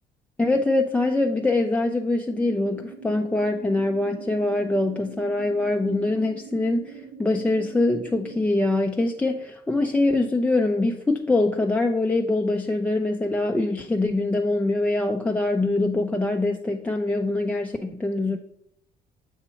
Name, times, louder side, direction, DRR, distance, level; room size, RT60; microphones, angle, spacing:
voice 1, 0.4-18.4, left 2 dB, 10° left, 2 dB, 0.3 m, -24 dB
sound 1, 2.3-8.5, right 5 dB, 50° right, 0.8 m, -43 dB
7.0 x 2.9 x 5.6 m, 0.78 s
cardioid pair, 110°, 17 cm